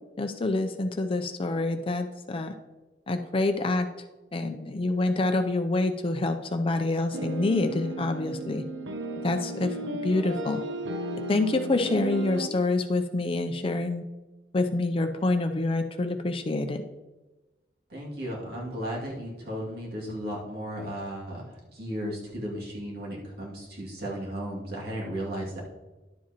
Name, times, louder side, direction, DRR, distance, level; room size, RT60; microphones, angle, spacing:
voice 1, 0.2-2.6 3.1-3.9 4.3-8.7 9.2-9.8 10.0-10.6 11.3-14.0 14.5-16.8, left 2 dB, 30° left, 7 dB, 0.5 m, -27 dB
sound 1, 7.1-12.5, right 1 dB, 80° right, 0.6 m, -34 dB
voice 2, 17.9-25.6, equal, 60° right, -4 dB, 2.4 m, -35 dB
11.5 x 7.5 x 2.9 m, 1.1 s
head